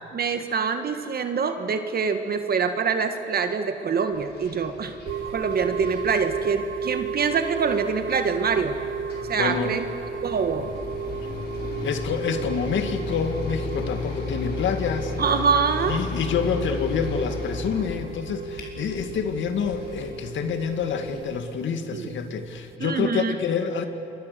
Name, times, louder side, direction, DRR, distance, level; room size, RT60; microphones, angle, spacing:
voice 1, 0.1-5.0 5.2-8.8 9.3-9.8 10.2-10.7 15.2-16.0 21.9-22.1 22.8-23.4, right 5 dB, 50° right, 7 dB, 1.7 m, -25 dB
sound 1, 4.1-21.2, left 3 dB, 55° left, 6.1 m, -35 dB
sound 2, 5.0-22.8, right 5 dB, 75° right, 1.1 m, -35 dB
voice 2, 9.4-9.8 11.8-15.1 15.9-23.8, left 6 dB, 70° left, 7 dB, 2.2 m, -27 dB
27.5 x 24.0 x 6.9 m, 2.7 s
cardioid pair, 90°, 20 cm